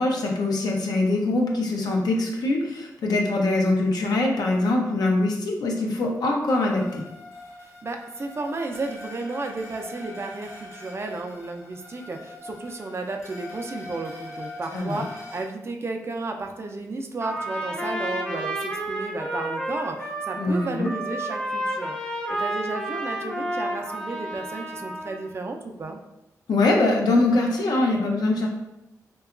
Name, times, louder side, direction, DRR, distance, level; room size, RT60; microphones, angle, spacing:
voice 1, 0.0-7.0 14.7-15.0 20.4-20.9 26.5-28.5, left 2 dB, 75° left, 0 dB, 0.5 m, -23 dB
sound 1, 6.5-15.4, left 2 dB, 45° left, 0.9 m, -42 dB
voice 2, 7.6-22.0 22.3-26.0, right 3 dB, 40° right, 3 dB, 0.4 m, -33 dB
Trumpet, 17.2-25.3, right 1 dB, 10° left, 0.6 m, -31 dB
2.8 x 2.2 x 2.4 m, 0.88 s
cardioid pair, 60°, 7 cm